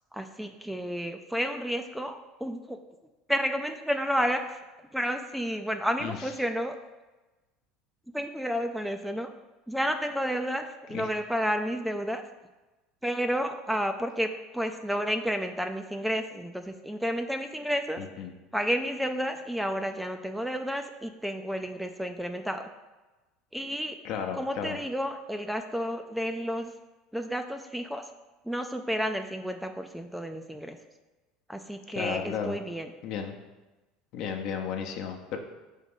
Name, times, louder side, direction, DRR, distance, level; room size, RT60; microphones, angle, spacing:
voice 1, 0.1-2.8 3.3-4.4 4.9-6.8 8.1-9.3 9.7-12.2 13.0-18.0 18.5-22.7 23.5-24.0 24.3-26.7 27.1-28.0 28.4-30.8 31.5-32.9, equal, 5° right, 6 dB, 0.4 m, -31 dB
voice 2, 18.0-18.3 24.0-24.8 31.9-32.6 33.0-33.4 34.1-35.4, left 7 dB, 60° left, 4 dB, 0.8 m, -33 dB
4.9 x 3.7 x 5.4 m, 1.1 s
supercardioid pair, 100°, 0 cm